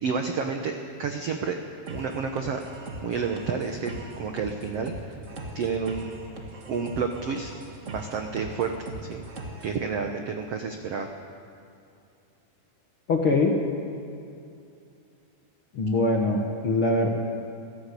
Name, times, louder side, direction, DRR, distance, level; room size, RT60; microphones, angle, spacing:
voice 1, 0.0-1.6 1.9-2.6 3.0-5.2 5.5-6.1 6.7-7.5 7.9-8.7 9.1-9.2 9.6-11.1, right 5 dB, 80° right, 4 dB, 1.4 m, -30 dB
sound 1, 1.9-9.8, right 1 dB, 45° right, 0.9 m, -40 dB
voice 2, 13.1-13.5 15.7-17.1, left 2 dB, 50° left, 1 dB, 1.6 m, -23 dB
26.5 x 14.5 x 8.3 m, 2.5 s
omnidirectional pair, 4.5 m